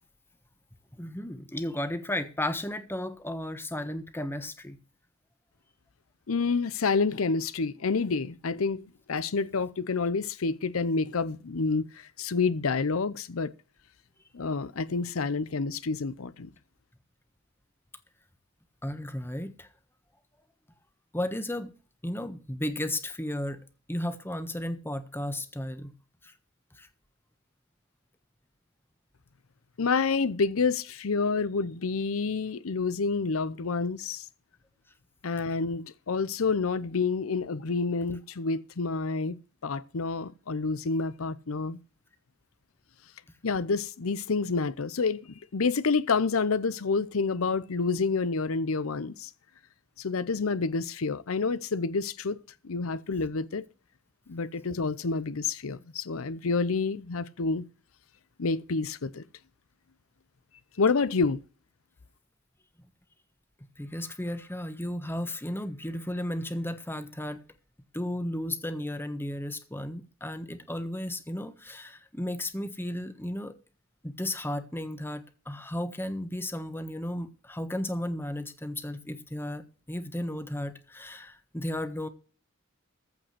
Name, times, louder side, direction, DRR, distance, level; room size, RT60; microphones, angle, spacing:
voice 1, 0.9-4.8 18.8-19.7 21.1-21.7 22.0-23.6 23.9-25.9 26.2-26.3 26.8-26.9 63.8-67.4 67.9-73.5 74.0-82.1, left 1 dB, 10° left, 1.3 m, -34 dB
voice 2, 6.3-13.5 14.3-16.5 29.8-34.3 35.2-39.4 39.6-41.8 43.4-49.3 50.0-52.4 52.6-53.6 54.3-57.6 58.4-59.2 60.8-61.4, left 4 dB, 80° left, 0.7 m, -28 dB
15.0 x 5.1 x 7.9 m
head